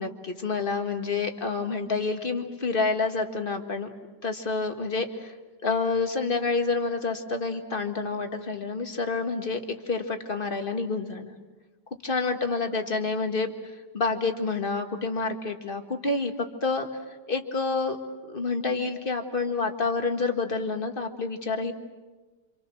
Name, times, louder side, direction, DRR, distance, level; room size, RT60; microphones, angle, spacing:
voice 1, 0.0-3.9 4.2-5.3 5.6-9.6 9.9-11.3 12.0-16.3 16.6-16.9 17.3-18.0 18.3-21.7, left 4 dB, 30° left, 5 dB, 1.8 m, -28 dB
27.5 x 26.5 x 6.3 m, 1.3 s
omnidirectional pair, 1.8 m